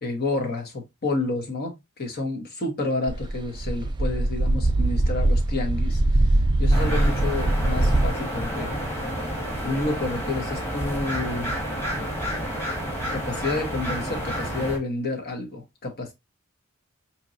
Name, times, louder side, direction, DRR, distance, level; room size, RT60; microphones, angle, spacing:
voice 1, 0.0-9.1 9.6-11.6 13.1-16.1, left 2 dB, 50° left, 1.0 m, -30 dB
sound 1, 3.1-8.1, right 2 dB, 20° right, 0.4 m, -22 dB
sound 2, 6.7-14.8, equal, 10° left, 1.5 m, -30 dB
4.4 x 2.9 x 2.6 m
head